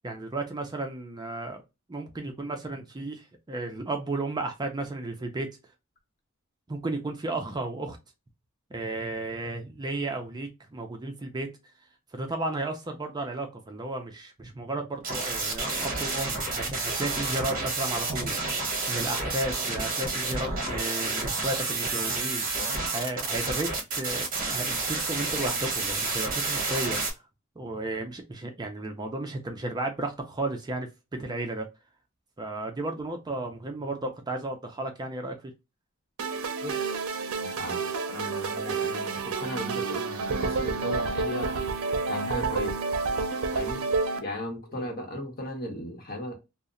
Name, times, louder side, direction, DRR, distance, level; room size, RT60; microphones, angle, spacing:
voice 1, 0.0-1.6 1.9-5.5 6.7-8.0 8.7-11.5 12.1-27.2 27.6-30.9 31.2-31.7 32.4-35.4 44.7-44.9, right 2 dB, 20° right, 0.4 m, -34 dB
sound 1, 15.0-27.1, right 3 dB, 40° right, 0.8 m, -30 dB
sound 2, 36.2-44.2, right 4 dB, 80° right, 0.5 m, -29 dB
voice 2, 36.6-37.1 37.4-37.8 38.1-41.6 42.1-42.8 43.5-43.8 44.2-46.3, left 1 dB, 45° left, 0.9 m, -36 dB
2.8 x 2.0 x 2.4 m
head